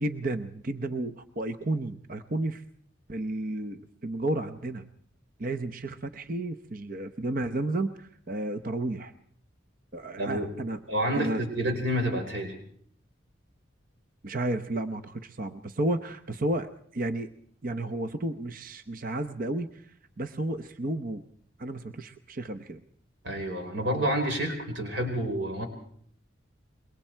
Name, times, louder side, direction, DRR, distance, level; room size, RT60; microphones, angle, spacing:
voice 1, 0.0-2.6 3.1-4.8 5.4-9.1 9.9-10.8 11.1-11.4 14.2-17.3 17.6-21.2 21.6-22.8, right 1 dB, 45° right, 9 dB, 0.8 m, -32 dB
voice 2, 10.2-10.5 10.9-12.5 23.2-25.7, equal, 60° right, 4 dB, 4.5 m, -29 dB
26.0 x 22.5 x 4.5 m, 0.62 s
head